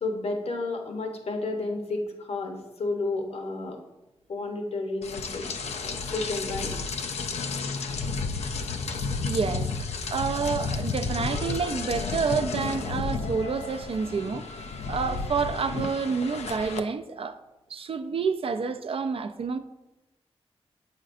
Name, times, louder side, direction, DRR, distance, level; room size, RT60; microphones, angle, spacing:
voice 1, 0.0-3.8 4.3-6.7, left 2 dB, 70° left, 0.9 m, -32 dB
Rain, 5.0-16.8, left 4 dB, 90° left, 0.4 m, -32 dB
voice 2, 9.2-17.4 17.7-19.6, right 5 dB, 60° right, 0.4 m, -29 dB
7.4 x 5.0 x 2.5 m
cardioid pair, 60°, 11 cm